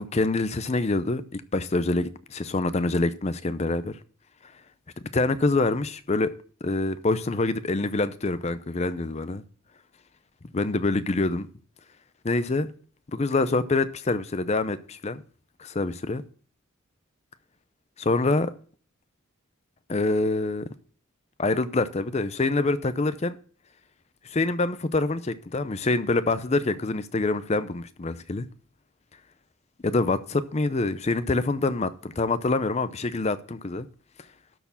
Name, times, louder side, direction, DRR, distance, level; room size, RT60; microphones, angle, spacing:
voice 1, 0.0-4.0 5.1-6.3 6.6-9.4 10.5-11.5 12.2-12.7 13.1-14.8 15.0-15.2 15.6-16.2 18.0-18.5 19.9-20.6 21.4-23.4 24.3-28.5 29.8-33.9, left 3 dB, 30° left, 0.5 m, -25 dB
12.5 x 4.5 x 5.8 m
head